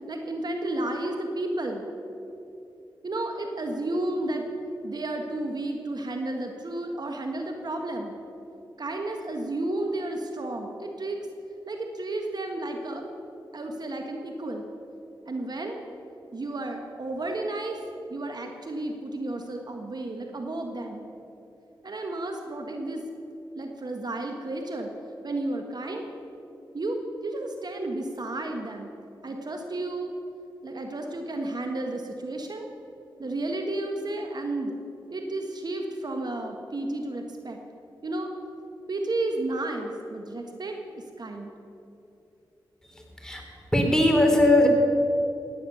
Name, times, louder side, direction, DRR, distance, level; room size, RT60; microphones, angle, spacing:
voice 1, 0.1-1.8 3.0-4.5 4.8-8.1 8.8-11.2 11.7-13.1 13.5-14.7 15.3-15.8 16.3-17.8 18.1-21.1 21.8-23.0 23.5-24.9 25.2-26.0 26.7-28.9 29.2-30.1 30.6-32.7 33.2-34.8 35.1-37.6 38.0-38.3 38.9-41.5, right 2 dB, 50° right, 3 dB, 1.6 m, -32 dB
voice 2, 42.9-43.4 43.7-44.7, left 1 dB, 5° left, 1 dB, 3.7 m, -20 dB
17.0 x 9.7 x 6.9 m, 2.8 s
cardioid pair, 50°, 9 cm